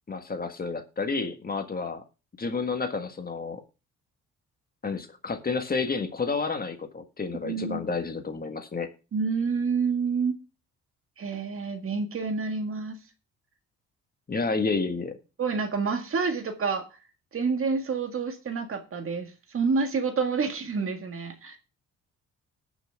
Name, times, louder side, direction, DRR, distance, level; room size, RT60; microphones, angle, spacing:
voice 1, 0.1-2.0 2.4-3.6 4.8-8.9 14.3-15.2, left 4 dB, 30° left, 1.6 m, -30 dB
voice 2, 7.4-7.8 9.1-10.4 11.2-13.0 15.4-16.9 17.3-21.6, right 5 dB, 45° right, 1.8 m, -28 dB
19.0 x 6.3 x 3.5 m
cardioid pair, 90°, 30 cm